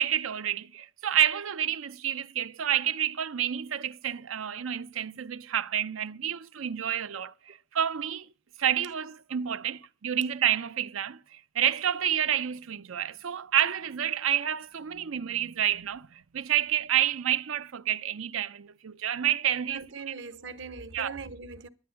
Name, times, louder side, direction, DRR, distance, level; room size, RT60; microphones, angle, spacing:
voice 1, 0.0-8.3 8.6-19.8 20.9-21.2, right 10 dB, 80° right, 0.6 m, -29 dB
voice 2, 19.7-21.7, right 4 dB, 60° right, 1.0 m, -40 dB
10.5 x 9.6 x 8.2 m
head